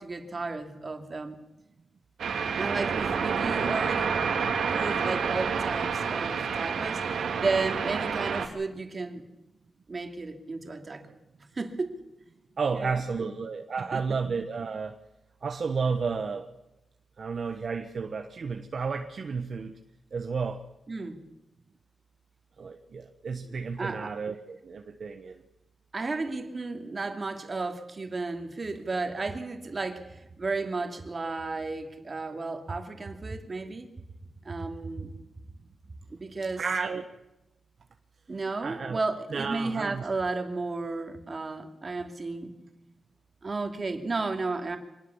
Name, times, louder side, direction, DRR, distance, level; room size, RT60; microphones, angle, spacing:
voice 1, 0.0-1.4 2.6-4.1 4.7-9.3 9.9-11.1 11.4-12.0 12.7-13.3 13.9-14.0 20.9-21.2 23.8-24.1 25.9-33.9 34.4-35.1 36.1-36.6 38.3-42.5 43.4-44.8, right 3 dB, 30° right, 5 dB, 2.8 m, -33 dB
sound 1, 2.2-8.5, right 6 dB, 90° right, 3.0 m, -28 dB
voice 2, 12.6-15.0 15.4-16.5 17.2-19.8 20.1-20.6 22.6-25.4 36.6-37.0 38.6-39.0 39.3-40.1, right 5 dB, 50° right, 5 dB, 1.2 m, -32 dB
25.0 x 19.5 x 7.3 m, 0.97 s
wide cardioid pair, 145°, 0 cm